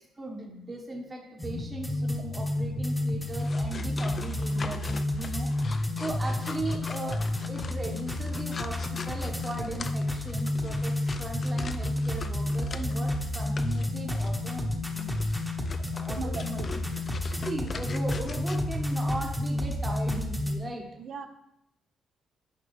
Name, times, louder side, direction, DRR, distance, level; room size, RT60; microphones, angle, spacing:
voice 1, 0.0-7.2 7.5-15.2 15.9-16.8 17.4-20.8, right 2 dB, 25° right, -1 dB, 1.1 m, -38 dB
sound 1, 1.4-20.6, left 1 dB, 5° left, 1.0 m, -30 dB
sound 2, 3.3-13.1 13.6-13.9 14.2-14.4 15.0-18.6, left 4 dB, 40° left, 0.4 m, -43 dB
voice 2, 16.2-16.7 21.0-21.3, right 5 dB, 65° right, 7 dB, 0.7 m, -39 dB
9.3 x 5.4 x 3.2 m, 0.80 s
cardioid pair, 90°, 0 cm